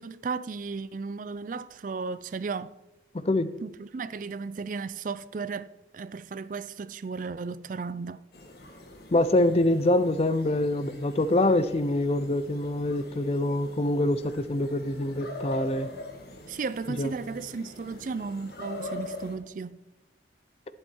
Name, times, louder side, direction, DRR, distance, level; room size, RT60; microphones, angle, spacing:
voice 1, 0.0-2.7 3.6-8.2 16.5-19.8, right 4 dB, 45° right, 0.4 m, -35 dB
voice 2, 3.1-3.5 9.1-15.9 17.0-17.1, left 1 dB, 35° left, 0.5 m, -25 dB
sound 1, 8.3-19.4, left 2 dB, 55° left, 1.8 m, -43 dB
11.5 x 9.0 x 4.5 m
head